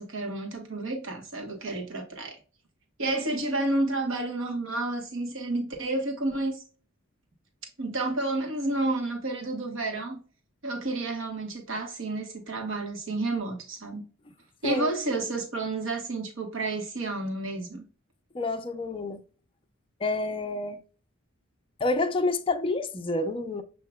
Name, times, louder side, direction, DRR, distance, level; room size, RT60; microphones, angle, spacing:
voice 1, 0.0-2.4 3.0-6.6 7.8-10.2 10.6-14.0 14.6-17.8, right 2 dB, 65° right, 1.2 m, -30 dB
voice 2, 18.3-19.2 20.0-20.8 21.8-23.6, left 2 dB, 25° left, 0.5 m, -28 dB
6.9 x 2.8 x 2.2 m
head